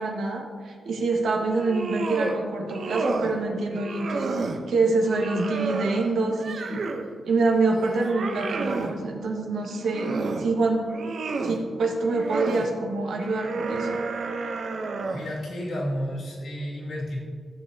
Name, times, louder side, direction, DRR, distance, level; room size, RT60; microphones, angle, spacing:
voice 1, 0.0-6.8 7.3-10.8 11.4-14.0, right 3 dB, 85° right, 1 dB, 1.3 m, -26 dB
sound 1, 1.5-2.4 2.7-3.4 3.7-4.6 5.1-7.1 7.6-9.0 9.6-10.5 10.9-11.6 12.1-12.7 13.2-15.4, right 3 dB, 55° right, 0.7 m, -31 dB
voice 2, 15.1-17.2, equal, 75° left, -4 dB, 2.1 m, -31 dB
14.5 x 7.4 x 2.7 m, 2.1 s
wide cardioid pair, 160°, 0 cm